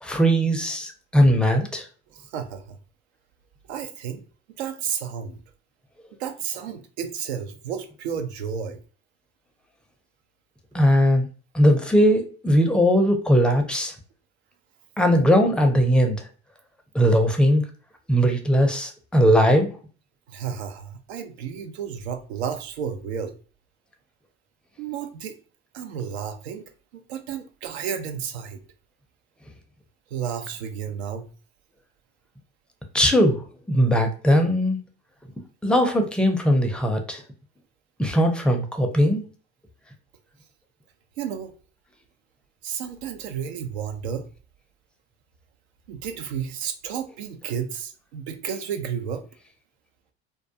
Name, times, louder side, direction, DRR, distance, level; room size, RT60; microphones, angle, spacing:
voice 1, 0.0-1.8 10.7-11.3 11.5-13.9 15.0-16.2 16.9-17.6 18.1-19.7 32.9-33.4 33.7-34.8 35.6-37.2 38.0-39.2, equal, 5° left, 4 dB, 0.5 m, -19 dB
voice 2, 2.1-2.8 3.7-4.2 4.6-5.4 6.2-8.8 20.3-23.3 24.8-25.4 25.7-26.6 26.9-28.6 30.1-31.3 41.2-41.5 42.6-44.3 45.9-49.2, right 7 dB, 75° right, 7 dB, 0.5 m, -32 dB
2.3 x 2.2 x 2.6 m, 0.38 s
hypercardioid pair, 65°, 33 cm